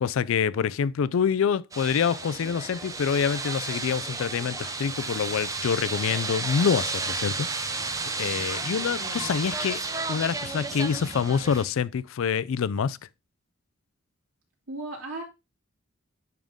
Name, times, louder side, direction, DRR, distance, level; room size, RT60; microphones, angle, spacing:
voice 1, 0.0-7.9 8.2-9.8 10.1-13.0, left 7 dB, 75° left, 0.4 m, -26 dB
sound 1, 1.7-11.7, right 3 dB, 15° right, 0.6 m, -32 dB
voice 2, 8.8-9.4 14.7-15.2, right 2 dB, 85° right, 2.7 m, -37 dB
10.5 x 3.7 x 3.5 m
head